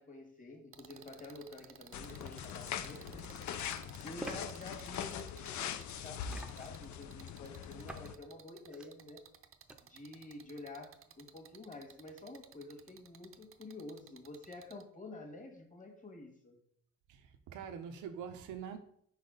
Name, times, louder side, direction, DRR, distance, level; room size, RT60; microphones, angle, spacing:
voice 1, 0.0-9.2 9.8-16.6, left 2 dB, 25° left, 1.6 m, -50 dB
sound 1, 0.7-14.8, right 9 dB, 45° right, 0.6 m, -57 dB
sound 2, 1.9-8.1, left 8 dB, 70° left, 0.5 m, -42 dB
sound 3, 2.7-2.8 4.2-4.4 6.3-6.8 7.9-8.1 8.6-8.9 9.7-9.8, right 2 dB, 5° right, 0.6 m, -46 dB
voice 2, 17.1-18.8, right 7 dB, 85° right, 0.6 m, -44 dB
4.7 x 4.1 x 5.1 m
cardioid pair, 90°, 30 cm